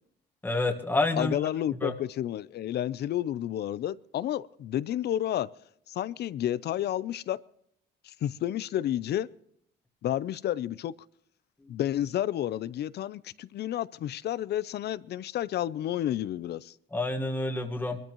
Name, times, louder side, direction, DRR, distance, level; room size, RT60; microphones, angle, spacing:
voice 1, 0.4-1.3 1.8-1.9 16.9-18.0, left 2 dB, 10° left, 1.6 m, -28 dB
voice 2, 1.2-5.5 5.9-7.4 8.2-9.3 10.0-10.9 11.7-16.7, left 12 dB, 65° left, 0.6 m, -30 dB
22.0 x 13.5 x 3.1 m
cardioid pair, 110°, 18 cm